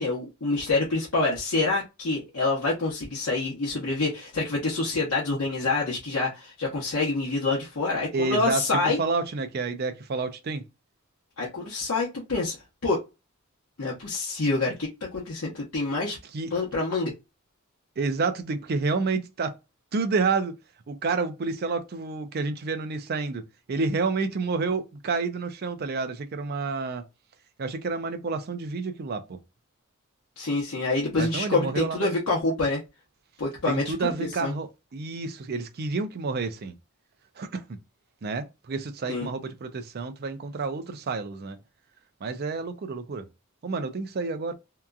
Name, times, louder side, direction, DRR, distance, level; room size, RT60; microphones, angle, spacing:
voice 1, 0.0-9.0 11.4-12.6 12.8-13.0 13.8-16.2 16.5-17.1 30.4-32.8 33.4-34.5 39.1-39.3, left 3 dB, 75° left, 0.9 m, -27 dB
voice 2, 8.1-10.6 16.3-16.5 18.0-19.5 19.9-20.5 20.9-23.4 23.7-27.0 27.6-29.4 31.2-32.1 33.7-36.7 37.4-37.6 38.2-41.6 42.2-43.3 43.6-44.5, right 4 dB, 50° right, 0.4 m, -29 dB
2.8 x 2.4 x 2.3 m
head